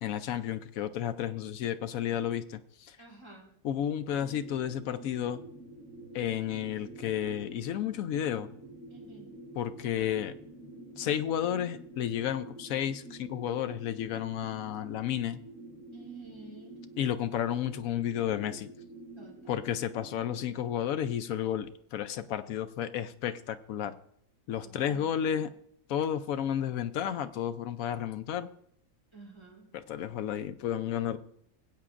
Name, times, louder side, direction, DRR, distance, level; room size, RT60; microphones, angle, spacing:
voice 1, 0.0-3.0 3.6-5.4 6.1-8.5 9.6-10.3 11.0-15.4 17.0-18.7 19.5-23.9 24.5-25.5 25.9-28.5 29.7-31.2, left 10 dB, 70° left, 11 dB, 0.9 m, -32 dB
voice 2, 3.0-3.4 8.9-9.3 15.9-16.8 19.2-19.6 24.6-25.3 29.1-29.7, right 4 dB, 15° right, -3 dB, 3.1 m, -50 dB
sound 1, 4.1-20.6, right 2 dB, 55° right, 1.9 m, -48 dB
20.5 x 8.5 x 2.5 m, 0.70 s
omnidirectional pair, 1.6 m